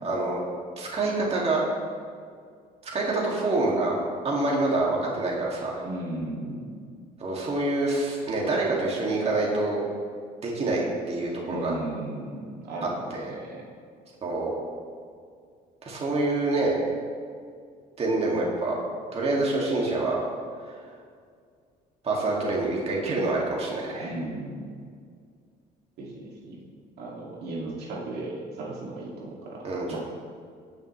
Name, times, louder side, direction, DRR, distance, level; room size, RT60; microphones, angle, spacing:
voice 1, 0.0-0.4 0.8-1.6 2.8-4.0 4.2-5.8 7.2-9.8 10.4-10.8 11.1-11.7 12.8-13.3 14.2-14.6 15.8-16.9 18.0-18.8 19.1-20.2 22.0-24.1 29.6-30.0, right 2 dB, 35° right, -3 dB, 2.2 m, -26 dB
voice 2, 5.8-6.7 11.4-13.7 24.0-24.7 26.0-26.6 27.0-30.0, right 2 dB, 75° right, -4 dB, 2.3 m, -36 dB
17.5 x 6.3 x 3.2 m, 2.1 s
cardioid pair, 110°, 17 cm